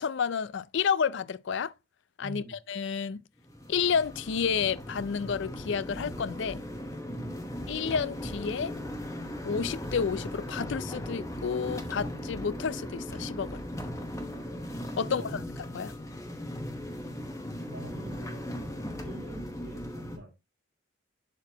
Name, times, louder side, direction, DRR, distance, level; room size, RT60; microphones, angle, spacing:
voice 1, 0.0-1.7 2.2-3.2 3.7-6.6 7.7-8.7 9.4-13.6 15.0-15.4 15.7-15.9, left 6 dB, 65° left, 0.4 m, -30 dB
voice 2, 2.2-2.6 7.1-7.4 15.0-15.4 17.6-18.7 19.0-20.3, right 1 dB, 50° right, 2.9 m, -45 dB
sound 1, 3.4-20.2, equal, 15° left, 0.9 m, -38 dB
11.0 x 4.0 x 2.9 m
head